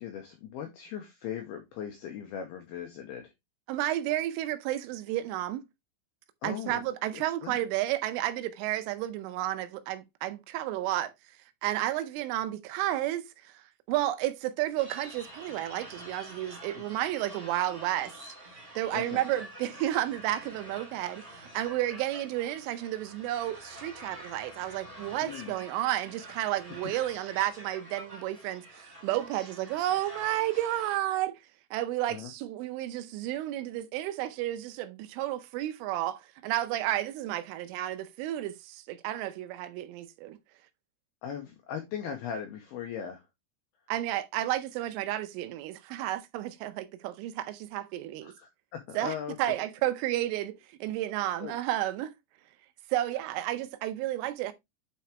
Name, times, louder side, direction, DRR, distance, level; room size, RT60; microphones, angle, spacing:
voice 1, 0.0-3.3 6.4-6.8 7.1-7.6 18.9-19.2 25.2-25.5 32.1-32.3 41.2-43.3 48.2-49.6 51.4-51.5, left 8 dB, 85° left, 2.2 m, -39 dB
voice 2, 3.7-5.7 6.4-11.1 11.6-18.3 18.8-31.4 31.7-40.4 43.9-48.3 48.9-52.1 52.9-54.5, right 14 dB, 85° right, 3.2 m, -32 dB
sound 1, 14.8-31.0, right 1 dB, 15° right, 2.3 m, -47 dB
9.2 x 4.6 x 2.9 m
omnidirectional pair, 5.7 m